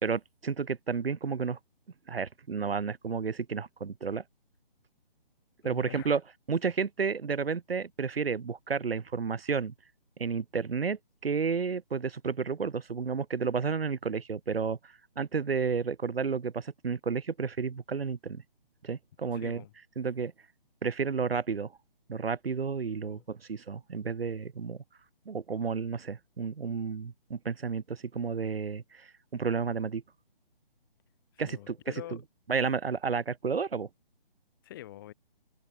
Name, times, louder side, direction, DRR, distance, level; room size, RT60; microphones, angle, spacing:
voice 1, 0.0-1.6 2.1-4.2 5.6-6.2 6.5-9.7 10.2-18.4 18.8-19.6 20.0-20.3 20.8-21.7 22.1-24.8 25.3-30.0 31.4-31.8 32.5-33.9, right 5 dB, 85° right, 1.4 m, -31 dB
voice 2, 5.6-6.1 19.3-19.7 23.0-23.2 31.3-32.2 34.6-35.1, left 14 dB, 20° left, 3.6 m, -45 dB
open air
hypercardioid pair, 170°, 29 cm